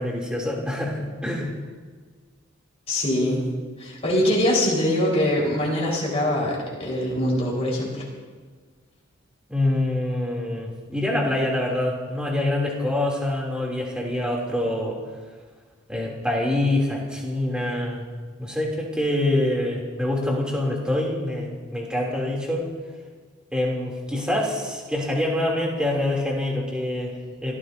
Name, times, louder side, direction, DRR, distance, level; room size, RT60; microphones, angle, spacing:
voice 1, 0.0-1.5 9.5-15.0 15.9-18.0 18.4-22.7 23.5-27.5, left 1 dB, 5° right, -3 dB, 3.0 m, -25 dB
voice 2, 2.9-3.4 3.8-8.0, left 1 dB, 30° left, -4 dB, 4.7 m, -23 dB
29.0 x 15.0 x 2.8 m, 1.5 s
head